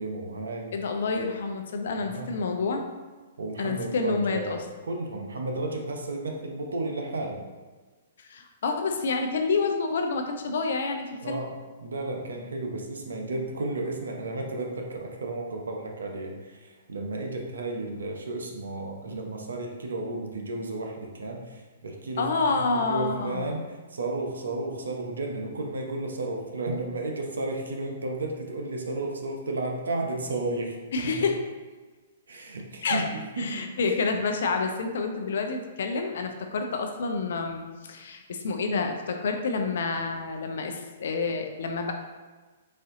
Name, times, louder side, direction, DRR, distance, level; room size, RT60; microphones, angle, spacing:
voice 1, 0.0-0.7 2.0-2.3 3.4-7.4 11.2-11.5 11.8-30.8 31.0-31.3 32.3-33.7, right 2 dB, 80° right, 1 dB, 0.8 m, -33 dB
voice 2, 0.7-2.9 3.6-4.6 8.2-11.4 22.2-23.6 30.9-31.4 32.8-33.1 33.4-41.9, left 4 dB, 65° left, 5 dB, 0.5 m, -28 dB
4.3 x 2.7 x 3.7 m, 1.3 s
hypercardioid pair, 125°, 0 cm